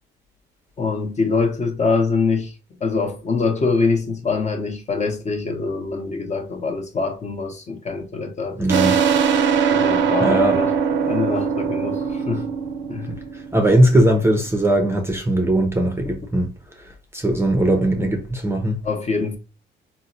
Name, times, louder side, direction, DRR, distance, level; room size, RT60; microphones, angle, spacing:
voice 1, 0.8-2.5 2.8-8.9 9.7-10.7 11.0-12.5 12.9-13.1 18.8-19.4, left 4 dB, 35° left, 0.7 m, -24 dB
voice 2, 8.6-9.0 10.2-10.6 13.5-16.5 16.8-18.8, right 1 dB, 10° right, 0.5 m, -19 dB
sound 1, 8.7-14.0, right 6 dB, 70° right, 0.4 m, -21 dB
3.9 x 2.0 x 2.6 m
cardioid pair, 90°, 20 cm